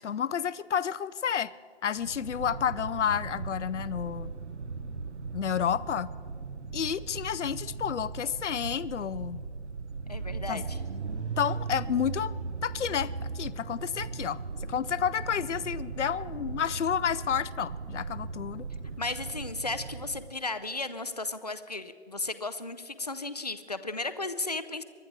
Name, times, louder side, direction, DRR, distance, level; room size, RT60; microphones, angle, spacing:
voice 1, 0.0-1.5 1.8-4.3 5.3-6.1 6.7-9.4 10.5-10.6 11.4-12.3 12.6-18.7, left 8 dB, 85° left, 17 dB, 0.6 m, -30 dB
sound 1, 2.0-20.3, right 4 dB, 75° right, 0.9 m, -38 dB
voice 2, 10.1-10.8 19.0-24.8, left 3 dB, 35° left, 11 dB, 0.5 m, -35 dB
24.0 x 11.0 x 4.7 m, 2.1 s
hypercardioid pair, 175°, 35 cm